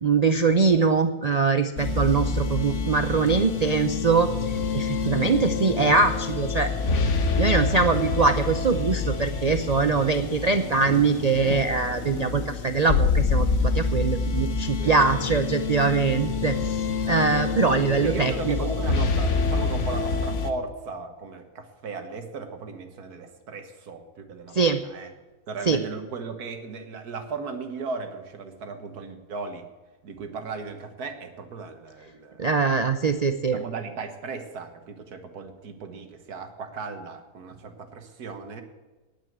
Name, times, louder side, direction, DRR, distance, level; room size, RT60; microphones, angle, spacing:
voice 1, 0.0-4.3 4.7-6.7 7.4-16.8 17.1-18.5 24.5-24.8 25.7-25.8 32.4-33.6, right 4 dB, 65° right, 9 dB, 0.4 m, -22 dB
sound 1, 1.8-20.5, left 4 dB, 55° left, 1.3 m, -27 dB
voice 2, 14.8-15.2 17.9-25.1 25.5-29.7 30.0-32.5 33.5-38.6, right 4 dB, 90° right, 6 dB, 1.9 m, -36 dB
10.0 x 9.3 x 8.1 m, 1.2 s
omnidirectional pair, 1.6 m